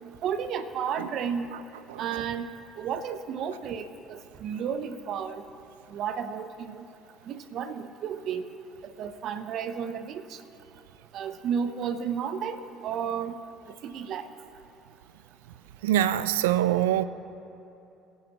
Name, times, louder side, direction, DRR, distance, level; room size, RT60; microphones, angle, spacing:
voice 1, 0.2-1.5 2.0-2.5 2.8-5.4 5.9-6.8 7.3-8.5 9.0-10.4 11.1-13.4 13.8-14.3, right 7 dB, 60° right, 11 dB, 0.8 m, -32 dB
voice 2, 15.8-17.0, right 12 dB, 85° right, 15 dB, 0.4 m, -23 dB
24.0 x 11.5 x 3.0 m, 2.8 s
hypercardioid pair, 60°, 0 cm